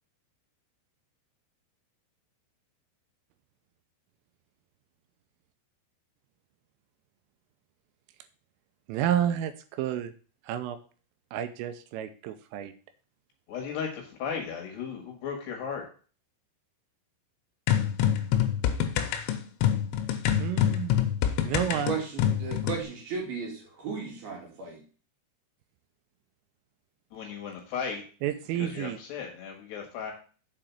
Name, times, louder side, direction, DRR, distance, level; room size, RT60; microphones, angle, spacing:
voice 1, 8.9-10.1 10.5-10.8 11.3-12.7 20.4-20.9 21.4-21.9 28.2-29.0, right 10 dB, 85° right, 10 dB, 3.1 m, -30 dB
voice 2, 13.5-15.8 27.1-28.0 28.6-30.1, left 6 dB, 60° left, 2 dB, 3.4 m, -35 dB
sound 1, 17.7-22.8, left 10 dB, 85° left, 3.6 m, -26 dB
voice 3, 21.6-24.8, right 5 dB, 55° right, 0 dB, 3.5 m, -35 dB
7.7 x 5.0 x 7.1 m, 0.39 s
omnidirectional pair, 5.9 m